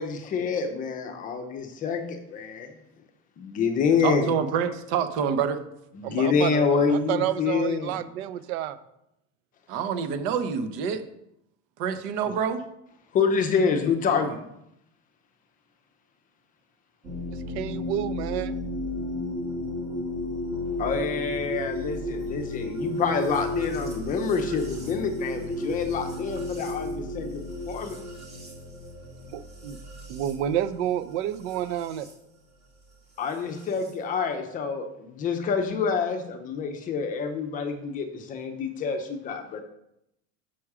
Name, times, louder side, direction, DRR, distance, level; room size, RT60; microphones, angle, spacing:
voice 1, 0.0-2.7 3.4-4.3 5.9-8.1 12.2-12.4 13.1-14.4 20.8-28.0 33.2-39.6, left 5 dB, 25° left, 6 dB, 0.6 m, -27 dB
voice 2, 4.0-5.6 9.7-11.0 11.8-12.6, right 7 dB, 60° right, 9 dB, 0.9 m, -27 dB
voice 3, 6.0-8.8 17.5-18.5 29.3-29.8 30.1-32.1, right 11 dB, 85° right, 14 dB, 0.7 m, -29 dB
sound 1, 17.0-32.1 33.3-33.9, left 1 dB, 20° right, 1.7 m, -33 dB
6.2 x 6.0 x 4.8 m, 0.81 s
cardioid pair, 170°, 32 cm